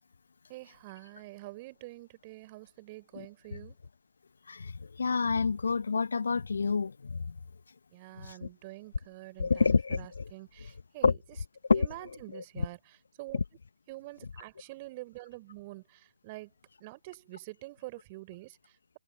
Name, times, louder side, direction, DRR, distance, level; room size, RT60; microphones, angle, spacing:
voice 1, 0.5-3.8 7.9-11.1 11.7-13.4 13.9-16.5 16.8-19.0, right 21 dB, 25° right, 3.8 m, -46 dB
voice 2, 4.5-7.3 8.2-8.5 9.4-10.3 11.0-11.1 11.7-11.9 12.3-12.7 13.3-13.4, left 5 dB, 60° left, 1.1 m, -28 dB
figure-of-eight pair, 145°, 0 cm